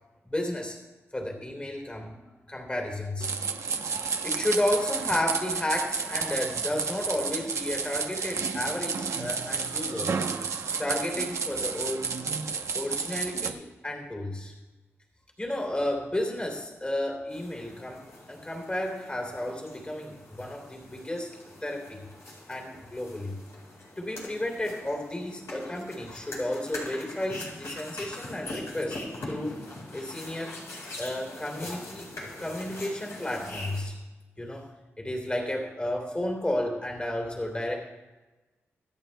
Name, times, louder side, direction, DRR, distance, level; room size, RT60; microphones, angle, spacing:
voice 1, 0.3-0.8 1.1-2.2 2.5-3.3 4.2-10.2 10.8-12.1 12.7-14.5 15.4-21.3 21.6-22.1 22.5-23.4 24.0-29.7 29.9-30.6 31.0-32.1 32.4-34.0 34.4-34.7 35.0-37.8, left 1 dB, 20° left, 1 dB, 3.1 m, -32 dB
sound 1, 3.2-13.5, right 5 dB, 75° right, 0.9 m, -31 dB
sound 2, 17.3-33.8, left 2 dB, 75° left, 4.4 m, -42 dB
24.5 x 9.4 x 2.3 m, 1.1 s
cardioid pair, 80°, 5 cm